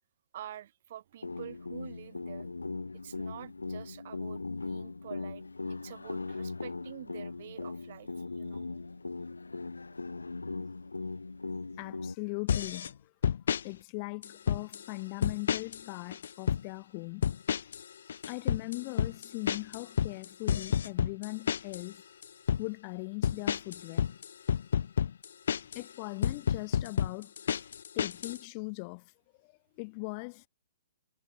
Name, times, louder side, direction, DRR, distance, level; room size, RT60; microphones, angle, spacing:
voice 1, 0.3-2.5 2.9-5.4 5.7-8.1 8.3-8.7, right 12 dB, 55° right, 1.4 m, -47 dB
sound 1, 1.2-12.2, left 3 dB, 85° left, 2.0 m, -39 dB
voice 2, 11.8-12.9 13.6-17.2 18.3-22.0 22.6-24.1 25.7-27.3 28.0-29.0 29.4-29.5 29.8-30.5, left 33 dB, 35° left, 0.3 m, -39 dB
sound 2, 12.5-12.9 13.2-13.6 14.2-14.8 15.2-15.8 16.1-16.6 17.2-17.8 18.1-21.8 22.2-22.6 23.2-25.8 26.2-28.4, left 8 dB, 65° left, 0.6 m, -30 dB
figure-of-eight pair, 125°, 0 cm